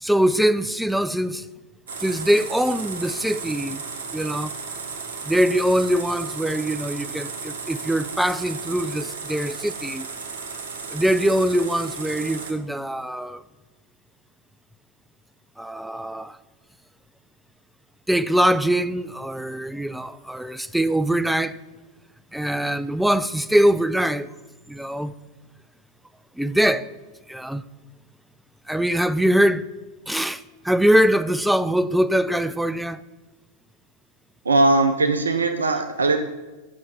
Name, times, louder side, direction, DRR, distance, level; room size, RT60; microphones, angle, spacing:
voice 1, 0.0-1.5 2.0-3.8 4.1-4.5 5.2-10.1 10.9-13.4 15.6-16.4 18.1-21.6 22.3-24.3 24.7-25.1 26.4-26.9 27.3-27.6 28.7-29.7 30.1-33.0, equal, ahead, 0.3 m, -22 dB
sound 1, 1.9-12.5, right 5 dB, 60° right, 1.1 m, -34 dB
voice 2, 34.4-36.2, right 2 dB, 75° right, 0.5 m, -19 dB
8.3 x 5.8 x 4.8 m
figure-of-eight pair, 90°, 0 cm